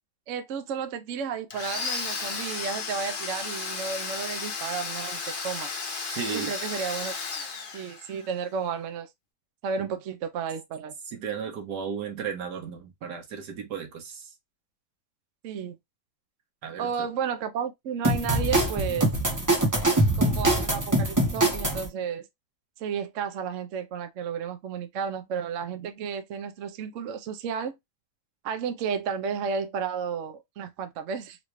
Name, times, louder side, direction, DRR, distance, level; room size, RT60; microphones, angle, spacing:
voice 1, 0.3-5.7 6.3-7.1 7.7-9.1 9.6-10.9 15.4-15.8 16.8-19.1 20.2-22.3 22.8-27.8 28.4-31.4, right 6 dB, 65° right, 0.8 m, -32 dB
Domestic sounds home sounds, 1.5-8.3, left 5 dB, 45° left, 0.7 m, -34 dB
voice 2, 6.1-6.5 9.8-9.9 11.1-14.3 16.6-17.1, right 7 dB, 80° right, 1.6 m, -35 dB
sound 1, 18.0-21.9, right 1 dB, 15° right, 0.7 m, -23 dB
4.0 x 2.3 x 3.0 m
omnidirectional pair, 1.8 m